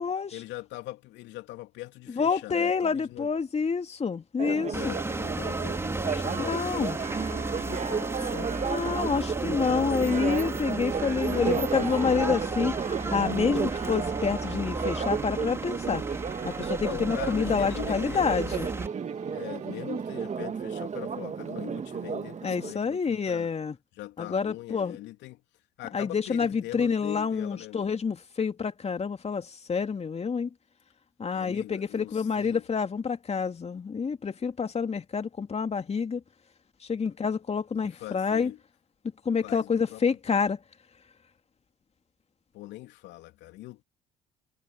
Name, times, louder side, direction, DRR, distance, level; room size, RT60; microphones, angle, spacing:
voice 1, 0.3-3.3 4.7-6.7 7.1-9.2 11.3-12.3 16.8-18.5 19.3-23.5 23.9-25.4 25.8-27.8 31.3-32.6 37.8-38.6 39.4-40.4 42.5-43.8, left 17 dB, 65° left, 2.9 m, -41 dB
voice 2, 2.1-5.0 6.4-7.0 8.7-12.7 13.1-16.0 16.4-18.7 22.4-23.8 24.2-25.0 25.9-30.5 31.2-36.2 36.8-38.5 39.2-40.6, left 5 dB, 35° left, 2.7 m, -28 dB
Church bell, 4.4-22.7, right 6 dB, 35° right, 1.8 m, -33 dB
sound 1, 4.7-18.9, right 2 dB, 15° right, 2.7 m, -34 dB
sound 2, 10.9-20.6, right 10 dB, 85° right, 5.5 m, -53 dB
hypercardioid pair, 55°, 20 cm